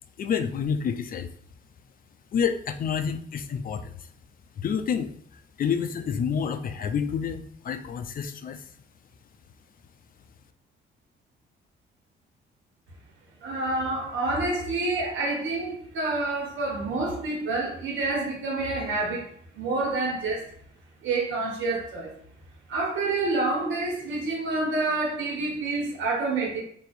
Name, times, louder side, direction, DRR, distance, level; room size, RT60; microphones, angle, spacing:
voice 1, 0.2-1.3 2.3-3.9 4.6-5.1 5.6-8.6, left 7 dB, 45° left, 0.4 m, -28 dB
voice 2, 13.4-20.5 21.0-22.1 22.7-26.6, right 2 dB, 75° right, 1.3 m, -28 dB
2.7 x 2.4 x 4.2 m
cardioid pair, 90°, 20 cm